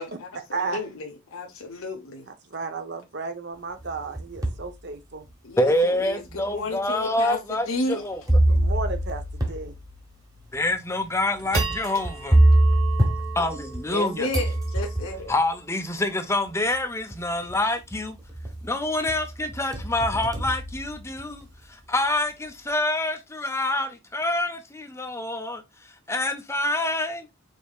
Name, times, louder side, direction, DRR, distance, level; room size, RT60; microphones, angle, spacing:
voice 1, 0.0-2.3 5.4-8.0 13.9-15.3, left 2 dB, 70° left, 0.9 m, -32 dB
voice 2, 2.5-5.3 8.5-9.8, right 4 dB, 50° right, 0.8 m, -33 dB
sound 1, 3.8-4.7 5.3-5.4 6.3-6.4 8.3-14.0 14.3-15.3 16.5-16.6 17.1-17.5 17.9-18.7 19.1-21.4, right 1 dB, 15° right, 1.1 m, -24 dB
voice 3, 5.6-8.2 10.5-12.4 13.3-14.3 15.3-18.2 18.6-27.3, left 1 dB, 10° left, 0.6 m, -26 dB
sound 2, 8.0-8.1 8.4-8.5 8.9-9.1 9.6-9.7 10.3-10.6 11.1-17.6, right 6 dB, 70° right, 1.2 m, -38 dB
5.3 x 4.1 x 2.4 m
head